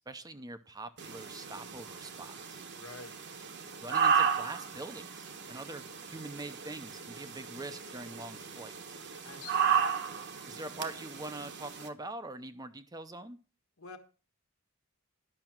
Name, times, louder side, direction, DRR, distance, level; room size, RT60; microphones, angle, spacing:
voice 1, 0.1-2.6 3.8-9.0 10.5-13.4, right 2 dB, 15° right, 10 dB, 0.6 m, -44 dB
sound 1, 1.0-11.9, right 7 dB, 55° right, 1.2 m, -34 dB
voice 2, 2.8-3.2 9.2-9.8 13.8-14.0, left 4 dB, 75° left, 7 dB, 1.4 m, -47 dB
11.0 x 6.0 x 5.9 m, 0.35 s
head